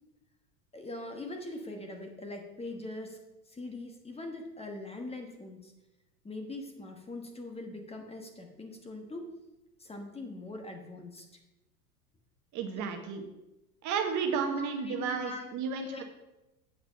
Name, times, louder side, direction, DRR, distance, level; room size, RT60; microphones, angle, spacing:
voice 1, 0.7-3.2 3.5-5.7 6.2-9.3 9.8-11.3 12.7-12.8 14.5-15.5 15.8-16.0, left 2 dB, 15° left, 4 dB, 1.2 m, -42 dB
voice 2, 12.5-13.2 13.8-16.0, right 6 dB, 40° right, 5 dB, 1.1 m, -32 dB
7.8 x 5.8 x 5.6 m, 0.98 s
hypercardioid pair, 105°, 46 cm